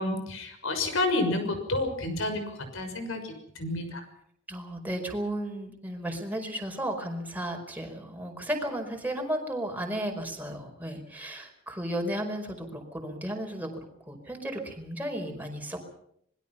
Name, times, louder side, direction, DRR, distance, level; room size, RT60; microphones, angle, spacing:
voice 1, 0.0-2.4 2.7-4.0, left 2 dB, 70° left, 7 dB, 6.3 m, -29 dB
voice 2, 4.5-15.9, right 1 dB, 10° right, 2 dB, 5.0 m, -34 dB
26.0 x 21.5 x 5.7 m, 0.70 s
head